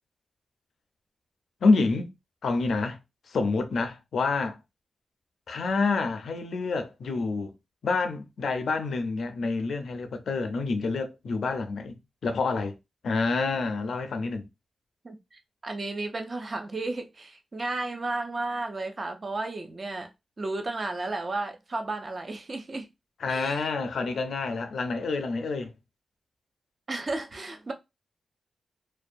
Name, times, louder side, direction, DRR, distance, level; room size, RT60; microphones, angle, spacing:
voice 1, 1.6-2.1 2.4-3.0 3.3-4.6 5.5-7.5 7.8-12.7 13.0-14.5 23.2-25.7, left 3 dB, 70° left, 0.4 m, -27 dB
voice 2, 15.0-20.1 20.4-22.9 23.3-23.7 26.9-27.7, right 2 dB, 30° right, 0.4 m, -33 dB
2.4 x 2.1 x 2.5 m
wide cardioid pair, 160°, 0 cm